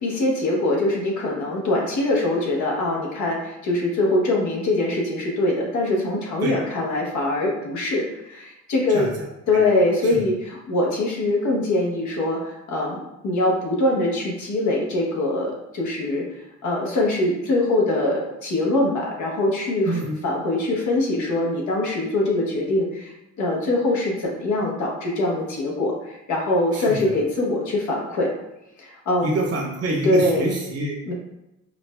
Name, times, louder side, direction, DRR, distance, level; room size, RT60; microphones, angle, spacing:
voice 1, 0.0-9.1 9.5-13.0 13.2-16.2 16.6-28.3 28.8-29.3 30.0-30.5 31.0-31.1, left 2 dB, 75° left, -2 dB, 0.9 m, -23 dB
voice 2, 19.8-20.2 26.7-26.9 29.2-31.1, right 2 dB, 50° right, -1 dB, 1.0 m, -26 dB
4.7 x 2.3 x 2.2 m, 0.89 s
cardioid pair, 90°, 30 cm